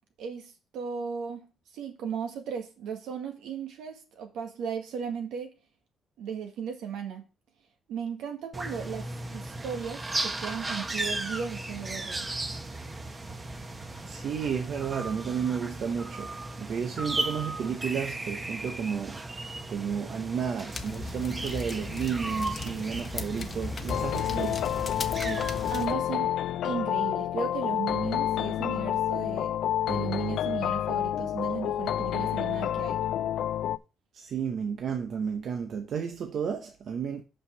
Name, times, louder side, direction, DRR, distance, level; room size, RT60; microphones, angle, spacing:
voice 1, 0.2-5.5 6.2-7.2 7.9-9.1 9.3-12.3 24.3-24.6 25.2-26.3 26.6-29.6 29.9-33.0, right 7 dB, 85° right, 1.8 m, -36 dB
sound 1, 8.5-25.8, right 2 dB, 25° right, 1.1 m, -36 dB
voice 2, 14.1-19.2 19.7-24.6 34.1-37.2, right 7 dB, 65° right, 0.8 m, -32 dB
fire ambience flames crackles pops burning, 20.7-25.9, left 4 dB, 45° left, 1.0 m, -37 dB
sound 2, 23.9-33.8, left 11 dB, 80° left, 0.4 m, -29 dB
5.6 x 5.5 x 6.8 m
cardioid pair, 90°, 0 cm